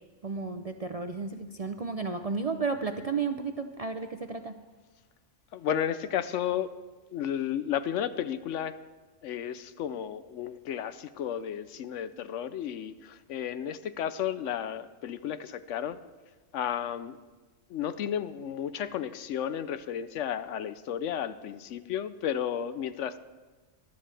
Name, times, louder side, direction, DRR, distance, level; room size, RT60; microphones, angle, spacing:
voice 1, 0.2-4.6, right 4 dB, 50° right, 7 dB, 0.4 m, -33 dB
voice 2, 5.5-6.7 7.1-8.8 9.2-16.0 16.5-17.2 17.7-23.2, left 9 dB, 75° left, 13 dB, 0.9 m, -33 dB
20.5 x 12.0 x 3.4 m, 1.3 s
omnidirectional pair, 1.3 m